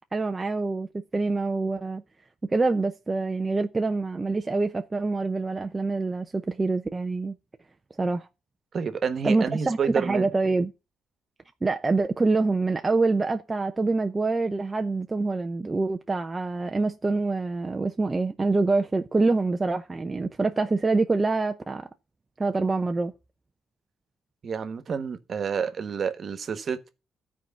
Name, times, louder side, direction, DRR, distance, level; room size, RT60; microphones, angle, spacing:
voice 1, 0.1-0.9 1.1-2.0 2.5-7.3 8.0-8.3 9.2-10.7 11.6-21.9 22.4-23.1, right 3 dB, 25° right, 0.7 m, -25 dB
voice 2, 8.7-10.3 24.4-26.9, right 6 dB, 50° right, 1.4 m, -29 dB
13.5 x 4.7 x 7.4 m
cardioid pair, 90°, 0 cm